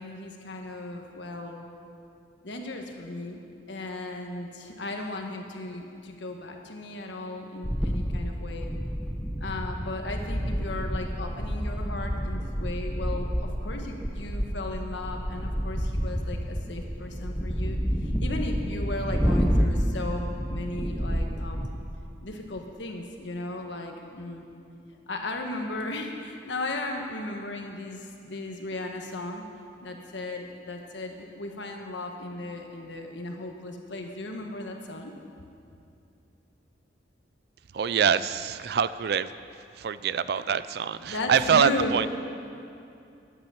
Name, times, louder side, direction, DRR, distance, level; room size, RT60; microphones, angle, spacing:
voice 1, 0.0-1.7 2.4-3.4 3.7-8.7 9.4-21.7 22.2-24.5 25.1-29.4 29.8-35.1 41.0-42.0, left 2 dB, 75° left, 3 dB, 1.3 m, -36 dB
sound 1, 7.6-21.8, equal, ahead, 0.5 m, -29 dB
voice 2, 37.7-39.3 39.8-42.1, right 7 dB, 55° right, 15 dB, 0.3 m, -25 dB
10.5 x 8.8 x 7.1 m, 2.6 s
head